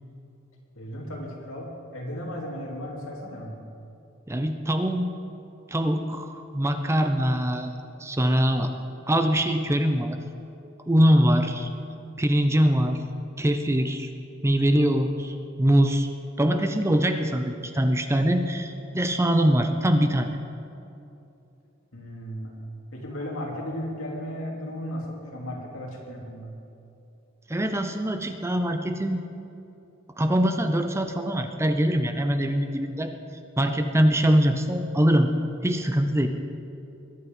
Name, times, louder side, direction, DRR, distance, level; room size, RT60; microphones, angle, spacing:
voice 1, 0.7-3.5 21.9-22.5 22.9-26.5, equal, 75° left, -2 dB, 3.0 m, -35 dB
voice 2, 4.3-5.2 5.7-7.7 8.0-8.7 9.1-10.2 10.9-11.7 12.2-13.0 13.4-14.1 14.4-16.1 16.4-20.3 27.5-29.2 30.2-33.1 33.6-35.3 35.6-36.3, equal, 15° right, 7 dB, 0.6 m, -23 dB
21.5 x 8.6 x 5.4 m, 2.8 s
head